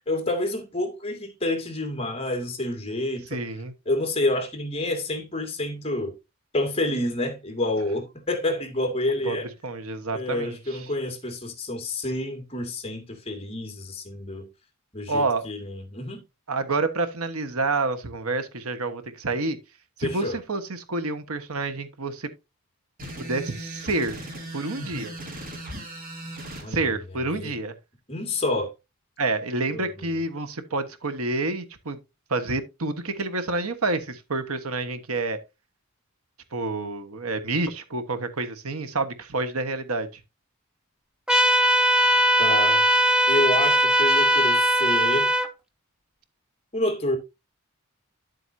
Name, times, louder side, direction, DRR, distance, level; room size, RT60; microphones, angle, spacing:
voice 1, 0.1-3.4 3.9-6.1 6.5-9.5 10.1-14.5 14.9-16.2 20.0-20.4 26.6-26.8 27.2-27.5 28.1-28.7 29.7-29.9 42.4-42.9 43.3-45.3 46.7-47.2, left 1 dB, 25° left, 2.3 m, -28 dB
voice 2, 3.3-3.7 9.2-9.4 9.6-10.9 15.1-15.5 16.5-19.6 20.0-22.3 23.2-24.2 24.5-25.1 26.7-27.7 29.2-32.0 32.3-35.4 36.5-40.1, right 3 dB, 80° right, 1.3 m, -28 dB
sound 1, 23.0-26.7, right 1 dB, 40° right, 3.0 m, -37 dB
sound 2, 41.3-45.5, equal, 5° right, 0.8 m, -20 dB
11.0 x 7.9 x 2.7 m
head